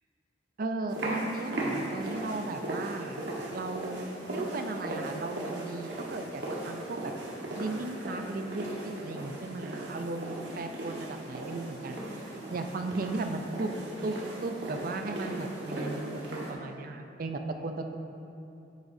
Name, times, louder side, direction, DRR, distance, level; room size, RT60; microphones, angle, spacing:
voice 1, 0.6-3.2 3.5-7.1 7.6-12.0 12.5-13.7 14.0-18.0, right 2 dB, 50° right, 6 dB, 0.5 m, -36 dB
sound 1, 0.9-16.5, right 1 dB, 75° right, 1.4 m, -37 dB
8.9 x 8.1 x 2.7 m, 2.7 s
head